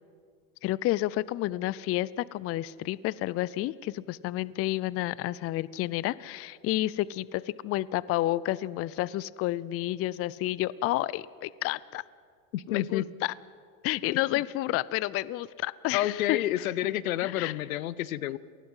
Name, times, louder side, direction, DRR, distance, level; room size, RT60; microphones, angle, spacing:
voice 1, 0.6-12.0 12.7-13.3 13.8-16.7 17.2-17.5, left 16 dB, 35° left, 21 dB, 0.5 m, -30 dB
voice 2, 12.5-13.0 14.1-14.2 15.9-18.4, left 14 dB, 90° left, 19 dB, 0.8 m, -29 dB
26.5 x 19.5 x 5.6 m, 2.2 s
supercardioid pair, 110°, 40 cm